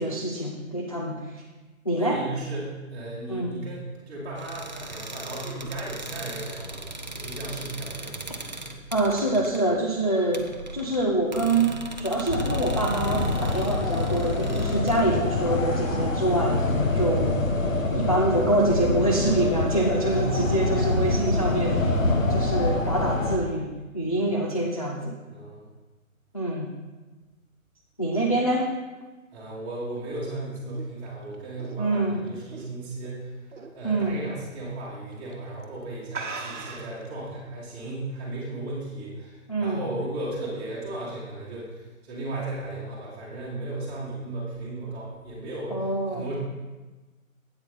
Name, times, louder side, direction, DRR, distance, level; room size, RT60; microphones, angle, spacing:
voice 1, 0.0-1.4 1.9-2.2 3.3-3.6 8.9-10.5 10.7-17.4 17.9-21.9 22.3-25.1 26.3-26.7 28.0-28.7 31.8-32.2 33.8-34.2 39.5-39.8 45.7-46.3, right 1 dB, 25° left, -2 dB, 0.5 m, -25 dB
voice 2, 2.0-8.3 13.5-13.8 20.0-20.5 24.2-24.3 25.3-25.6 29.3-33.3 33.7-46.3, right 2 dB, 10° right, -8 dB, 1.9 m, -35 dB
sound 1, 4.4-15.0, right 2 dB, 35° right, 0.5 m, -39 dB
sound 2, 12.3-23.4, left 2 dB, 65° left, 1.4 m, -25 dB
sound 3, 30.0-33.1 33.5-33.8 34.2-34.3 35.1-35.3 35.6-35.7 36.1-37.1, right 4 dB, 60° right, 1.1 m, -38 dB
8.6 x 8.5 x 4.2 m, 1.2 s
figure-of-eight pair, 160°, 42 cm